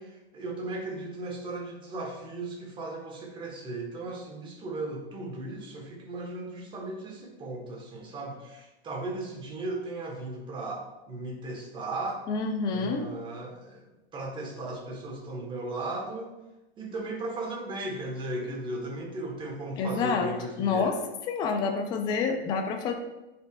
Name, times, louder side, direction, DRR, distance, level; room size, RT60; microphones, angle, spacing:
voice 1, 0.0-12.2 12.7-16.3 16.8-21.0, right 2 dB, 15° right, -1 dB, 1.2 m, -36 dB
voice 2, 12.3-13.1 19.8-20.3 20.6-21.0 21.3-22.9, left 5 dB, 15° left, 5 dB, 0.4 m, -28 dB
10.0 x 5.0 x 2.3 m, 1.0 s
hypercardioid pair, 145°, 32 cm